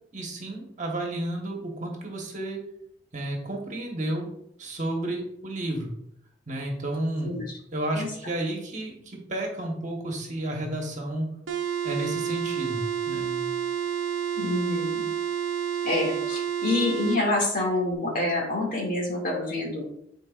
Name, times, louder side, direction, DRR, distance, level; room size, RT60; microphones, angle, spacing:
voice 1, 0.1-2.6 3.1-4.3 4.6-5.9 6.5-7.3 7.7-11.3 11.8-13.4, right 1 dB, 40° right, 1 dB, 1.3 m, -32 dB
sound 1, 11.5-17.2, right 9 dB, 80° right, 0.6 m, -29 dB
voice 2, 14.4-15.1 15.8-19.9, left 2 dB, 50° left, -2 dB, 2.2 m, -27 dB
9.8 x 4.6 x 2.5 m, 0.74 s
head